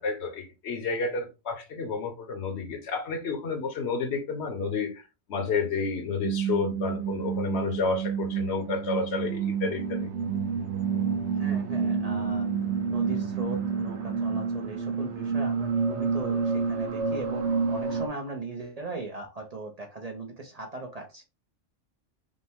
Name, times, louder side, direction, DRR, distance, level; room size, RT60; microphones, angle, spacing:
voice 1, 0.0-5.0 5.3-10.1, left 4 dB, 70° left, 1.1 m, -30 dB
sound 1, 6.2-18.1, right 6 dB, 75° right, 0.9 m, -29 dB
voice 2, 11.4-12.5 12.9-21.2, right 3 dB, 40° right, 0.6 m, -38 dB
5.2 x 2.2 x 3.5 m
omnidirectional pair, 1.2 m